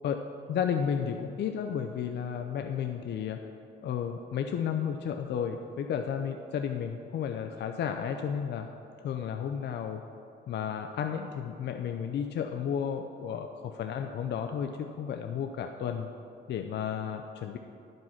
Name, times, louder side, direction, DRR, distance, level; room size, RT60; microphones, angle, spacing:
voice 1, 0.5-3.4 3.8-8.7 9.0-10.0 10.5-16.1 16.5-17.6, left 8 dB, 60° left, 5 dB, 0.5 m, -32 dB
11.0 x 5.3 x 5.6 m, 2.7 s
cardioid pair, 90°, 20 cm